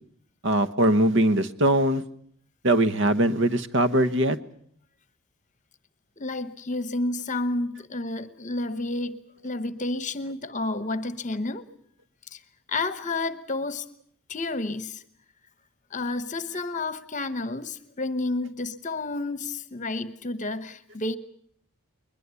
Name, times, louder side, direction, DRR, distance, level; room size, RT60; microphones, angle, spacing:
voice 1, 0.4-2.0 2.6-4.4, right 1 dB, 60° right, 1.2 m, -21 dB
voice 2, 6.2-11.7 12.3-12.4 12.7-13.8 14.3-15.0 15.9-21.2, left 2 dB, 35° left, 1.0 m, -30 dB
21.5 x 21.0 x 8.3 m
head